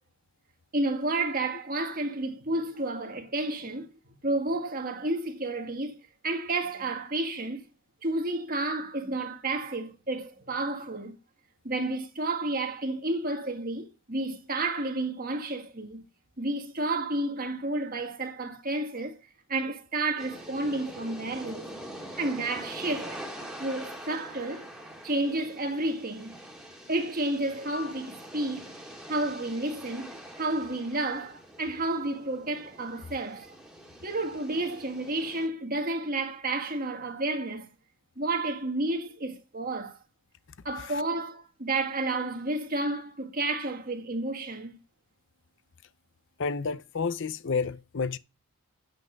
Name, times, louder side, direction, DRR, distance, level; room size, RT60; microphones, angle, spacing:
voice 1, 0.7-3.9 4.2-7.6 8.0-11.2 11.6-16.0 16.4-19.2 19.5-21.7 22.2-23.2 23.6-24.7 25.0-26.4 26.9-28.7 29.1-33.5 34.0-37.7 38.2-40.0 40.7-44.8, right 2 dB, 40° right, 1.8 m, -31 dB
sound 1, 20.2-35.5, equal, ahead, 2.7 m, -44 dB
voice 2, 46.4-48.2, left 5 dB, 55° left, 0.5 m, -30 dB
9.6 x 8.1 x 5.1 m
head